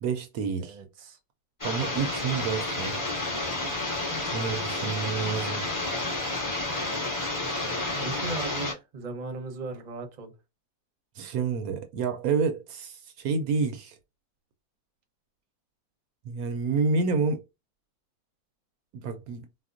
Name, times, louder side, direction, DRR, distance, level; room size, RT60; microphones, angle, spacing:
voice 1, 0.0-0.8 1.6-3.0 4.3-5.6 11.2-14.0 16.2-17.4 18.9-19.5, right 5 dB, 75° right, 1.0 m, -29 dB
voice 2, 0.6-1.2 7.9-10.3, right 3 dB, 40° right, 0.7 m, -37 dB
sound 1, 1.6-8.7, left 2 dB, 15° left, 0.8 m, -30 dB
4.2 x 2.1 x 2.4 m
omnidirectional pair, 1.6 m